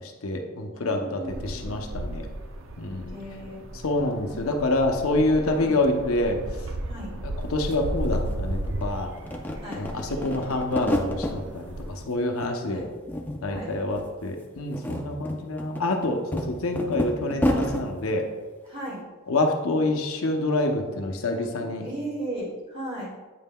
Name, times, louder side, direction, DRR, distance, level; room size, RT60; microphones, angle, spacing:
voice 1, 0.2-2.2 2.8-3.2 3.8-6.4 7.2-9.1 9.7-12.9 13.4-18.3 19.3-21.9, left 2 dB, 80° left, 3 dB, 0.7 m, -27 dB
voice 2, 0.8-2.2 3.1-3.6 4.3-4.4 5.5-5.8 6.9-7.1 9.6-9.9 12.7-12.9 13.5-13.7 18.7-19.0 20.7-23.1, right 1 dB, 25° right, -5 dB, 2.0 m, -37 dB
sound 1, 1.3-12.0, right 1 dB, 65° right, 0.5 m, -35 dB
sound 2, 7.4-7.5 7.7-8.8 9.2-11.4 11.8-12.5 12.8-13.7 13.9-14.1 14.6-17.8, equal, 10° left, 0.4 m, -30 dB
8.3 x 5.4 x 2.2 m, 1.3 s
head